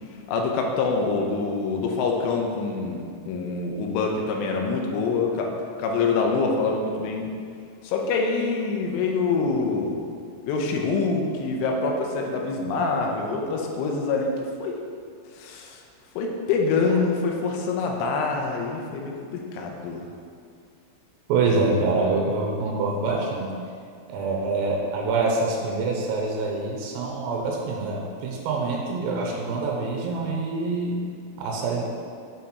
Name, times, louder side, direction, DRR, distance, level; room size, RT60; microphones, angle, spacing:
voice 1, 0.3-5.5 5.8-7.3 7.8-10.2 10.4-14.3 14.6-14.8 15.3-15.8 16.2-20.1, left 4 dB, 80° left, 1 dB, 3.0 m, -25 dB
voice 2, 21.3-23.5 24.1-31.0 31.4-31.8, right 3 dB, 85° right, -1 dB, 3.4 m, -25 dB
8.6 x 4.3 x 4.1 m, 2.3 s
omnidirectional pair, 5.8 m